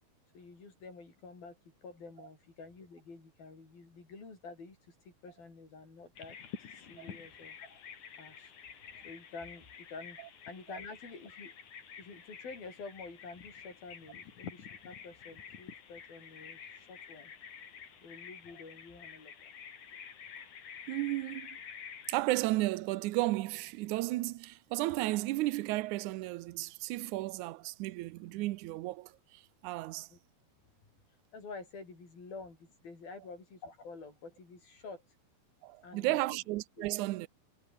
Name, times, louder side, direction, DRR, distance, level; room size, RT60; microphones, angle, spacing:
voice 1, 0.3-8.7 9.0-11.5 12.0-17.3 18.0-19.5 30.1-30.2 31.1-35.2 35.8-36.4, left 4 dB, 80° left, 9.8 m, -49 dB
Bird vocalization bird call bird song, 6.2-22.2, left 7 dB, 60° left, 4.1 m, -49 dB
voice 2, 20.9-21.5 22.1-30.1 35.6-37.3, right 18 dB, 80° right, 1.8 m, -34 dB
omnidirectional pair, 4.2 m